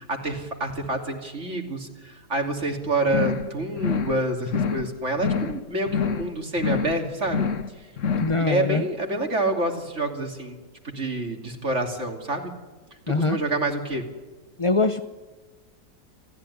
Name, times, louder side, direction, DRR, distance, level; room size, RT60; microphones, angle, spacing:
voice 1, 0.0-7.5 8.4-10.6 10.8-12.5 13.1-14.0, right 2 dB, 40° right, 3 dB, 3.2 m, -27 dB
sound 1, 3.1-3.5 3.8-4.2 4.5-4.9 5.2-5.6 5.9-6.3 6.6-7.0 7.3-7.7 8.0-8.4, left 6 dB, 50° left, 1.2 m, -26 dB
voice 2, 8.2-8.8 13.1-13.4 14.6-15.0, left 3 dB, 35° left, 8 dB, 0.5 m, -22 dB
29.0 x 14.5 x 9.9 m, 1.3 s
omnidirectional pair, 1.9 m